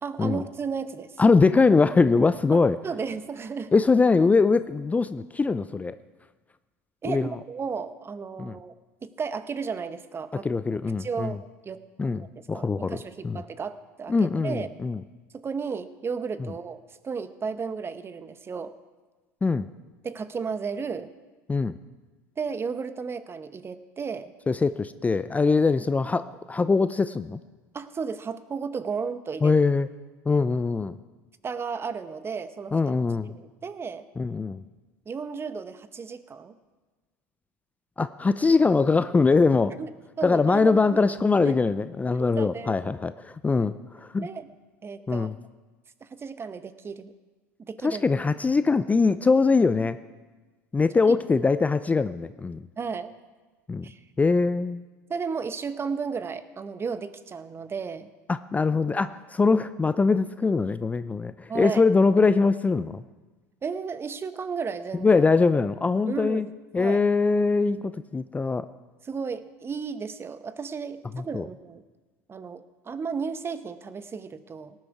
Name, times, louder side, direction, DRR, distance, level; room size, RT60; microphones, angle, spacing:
voice 1, 0.0-1.2 2.5-3.7 7.0-8.7 9.0-10.5 11.0-11.8 12.2-14.7 15.3-18.7 20.0-21.1 22.4-24.3 27.7-29.6 31.4-32.8 33.3-34.1 35.1-36.5 39.8-41.0 41.4-41.5 42.2-42.7 44.2-44.5 44.8-45.3 46.0-47.1 47.7-48.0 51.1-51.2 52.8-53.1 53.8-54.0 55.1-58.1 61.5-61.8 63.6-65.1 66.1-66.5 66.8-67.0 69.0-71.8 72.3-74.7, right 5 dB, 25° right, 13 dB, 0.9 m, -34 dB
voice 2, 1.2-2.8 3.7-6.0 7.0-7.3 8.4-8.6 10.4-11.3 12.0-13.4 14.1-15.0 19.4-19.7 21.5-21.8 24.5-27.4 29.4-29.9 30.3-30.9 32.7-33.3 34.2-34.6 38.0-39.8 40.2-44.3 45.1-45.3 47.8-50.0 50.7-52.6 53.7-53.9 54.2-54.8 58.3-63.0 65.0-66.5 66.7-68.7 71.1-71.5, left 4 dB, 15° left, 13 dB, 0.5 m, -22 dB
18.5 x 10.5 x 4.8 m, 1.3 s
hypercardioid pair, 75°, 9 cm